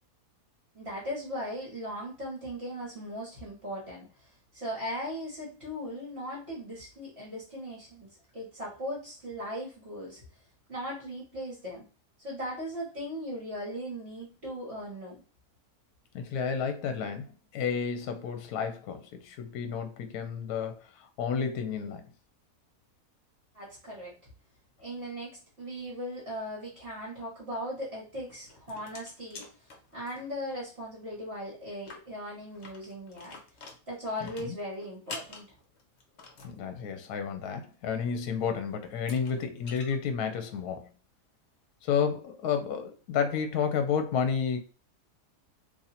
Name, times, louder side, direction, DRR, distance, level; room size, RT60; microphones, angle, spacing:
voice 1, 0.7-10.2 10.7-11.8 12.2-15.2 23.5-24.1 24.8-29.5 29.9-33.4 33.9-35.5, equal, 45° right, 1.5 m, -38 dB
voice 2, 16.1-22.1 34.4-34.5 36.4-40.9 41.8-44.6, left 6 dB, 75° left, 1.1 m, -31 dB
sound 1, 28.2-30.6 30.9-31.0 31.2-31.3 31.7-36.6 38.3-38.4 38.9-39.9, left 3 dB, 50° left, 1.0 m, -47 dB
3.0 x 2.6 x 4.1 m
omnidirectional pair, 1.7 m